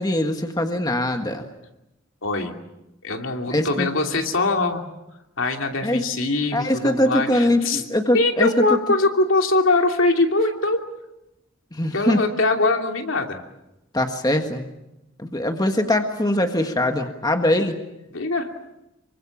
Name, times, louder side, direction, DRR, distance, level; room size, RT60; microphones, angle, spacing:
voice 1, 0.0-1.5 3.5-3.9 5.8-6.1 6.5-8.5 11.7-12.2 13.9-14.6 15.2-17.8, left 1 dB, 20° left, 5 dB, 1.6 m, -22 dB
voice 2, 2.2-2.5 3.0-4.8 5.4-7.8 8.1-10.8 11.9-13.4 18.1-18.5, left 2 dB, 75° left, 3 dB, 2.9 m, -22 dB
27.0 x 24.0 x 7.3 m, 0.93 s
head